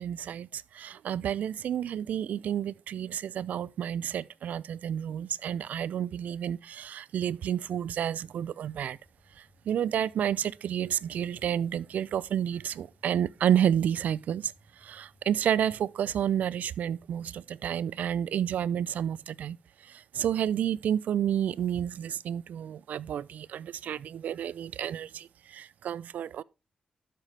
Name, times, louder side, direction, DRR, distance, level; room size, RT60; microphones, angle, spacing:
voice 1, 0.0-9.0 9.4-26.4, right 9 dB, 80° right, 0.3 m, -30 dB
sound 1, 8.6-15.9, equal, 15° left, 3.8 m, -64 dB
12.0 x 5.7 x 3.3 m
wide cardioid pair, 150°, 3 cm